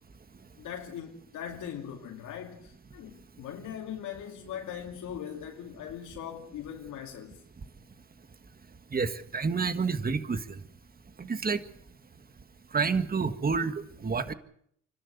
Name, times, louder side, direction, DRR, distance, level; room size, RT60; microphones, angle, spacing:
voice 1, 0.6-7.4, left 9 dB, 85° left, 2.5 m, -40 dB
voice 2, 8.9-10.4 11.2-11.6 12.7-14.3, right 5 dB, 30° right, 1.7 m, -29 dB
29.0 x 12.5 x 8.3 m
cardioid pair, 90°, 30 cm